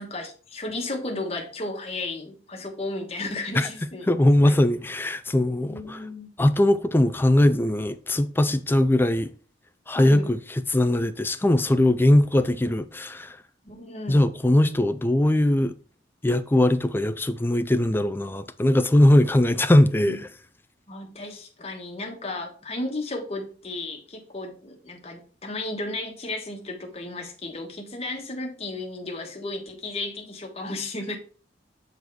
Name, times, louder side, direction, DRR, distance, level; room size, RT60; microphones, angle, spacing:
voice 1, 0.0-4.5 5.6-6.3 9.9-10.3 13.6-14.3 20.9-31.2, left 2 dB, 35° left, 1.3 m, -34 dB
voice 2, 4.1-6.0 6.4-9.3 9.9-13.4 14.1-15.7 16.2-20.3, left 1 dB, 10° left, 0.4 m, -20 dB
6.8 x 4.0 x 4.7 m
head